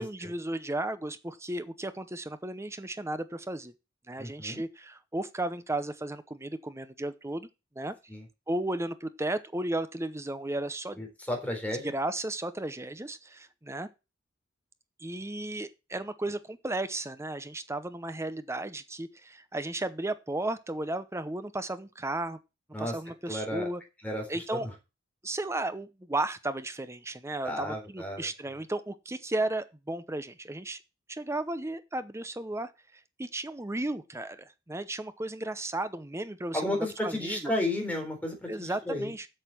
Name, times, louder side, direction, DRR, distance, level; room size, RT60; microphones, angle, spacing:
voice 1, 0.0-3.7 4.1-7.5 7.8-7.9 8.5-11.0 11.8-13.9 15.0-22.4 22.8-23.8 24.3-24.7 25.2-30.8 31.1-32.7 33.2-36.8 37.0-37.5 38.5-39.3, right 2 dB, 15° right, 0.7 m, -34 dB
voice 2, 4.2-4.6 8.1-8.2 11.0-11.9 22.7-23.0 23.3-23.7 24.0-24.7 27.4-28.3 36.5-39.1, left 1 dB, 10° left, 3.9 m, -33 dB
8.1 x 6.6 x 7.6 m
head